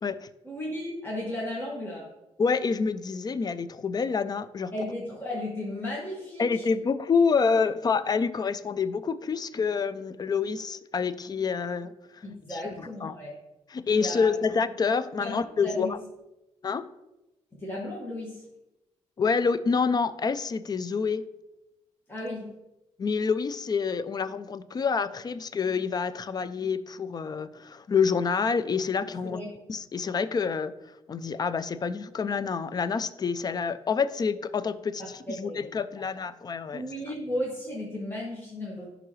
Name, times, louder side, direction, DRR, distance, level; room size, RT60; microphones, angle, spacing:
voice 1, 0.4-2.1 4.7-6.7 12.2-13.3 14.0-14.4 15.2-15.9 17.5-18.4 22.1-22.5 29.2-29.4 35.3-35.6 36.7-38.8, left 1 dB, 20° left, -5 dB, 1.7 m, -35 dB
voice 2, 2.4-4.7 6.4-12.2 12.5-13.2 13.7-15.9 16.6-16.9 19.2-21.2 23.0-29.4 29.7-30.7 31.1-35.0 35.4-36.8, left 5 dB, 35° left, 14 dB, 0.4 m, -27 dB
11.0 x 3.8 x 3.1 m, 0.95 s
cardioid pair, 95°, 12 cm